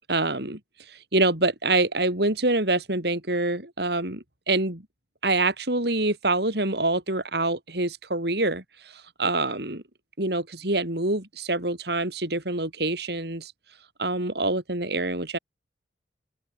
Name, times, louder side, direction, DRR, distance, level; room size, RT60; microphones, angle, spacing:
voice 1, 0.1-0.6 0.9-4.8 5.2-9.8 10.2-13.5 14.0-15.4, right 2 dB, 60° right, 4.1 m, -26 dB
open air
head